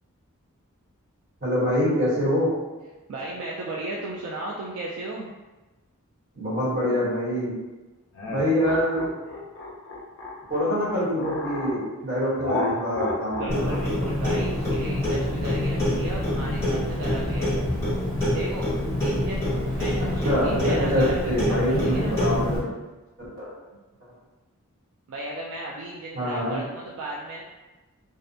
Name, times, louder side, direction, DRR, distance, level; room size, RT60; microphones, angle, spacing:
voice 1, 1.4-2.5 6.3-7.5 8.3-9.1 10.5-13.8 20.2-22.6 23.2-23.5 26.1-26.6, equal, 45° right, -10 dB, 1.2 m, -25 dB
voice 2, 3.1-5.3 13.3-17.5 18.3-18.7 19.0-22.2 23.7-23.8 25.1-27.4, right 2 dB, 70° right, -4 dB, 0.3 m, -35 dB
sound 1, 8.1-11.8 12.4-16.9, left 2 dB, 55° left, 0.4 m, -33 dB
Clock, 13.5-22.6, left 1 dB, 10° left, 1.0 m, -26 dB
2.5 x 2.1 x 2.6 m, 1.2 s
head